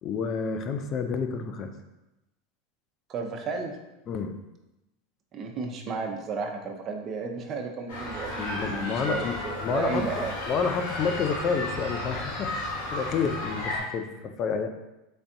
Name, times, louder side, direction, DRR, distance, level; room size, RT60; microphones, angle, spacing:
voice 1, 0.0-1.7 4.1-4.3 8.4-10.1 10.5-14.7, left 5 dB, 40° left, 7 dB, 0.4 m, -29 dB
voice 2, 3.1-3.8 5.3-10.4, right 4 dB, 35° right, 2 dB, 0.5 m, -33 dB
sound 1, 7.9-13.8, left 1 dB, 80° left, 1.3 m, -33 dB
3.9 x 3.4 x 2.6 m, 0.97 s
supercardioid pair, 115°, 0 cm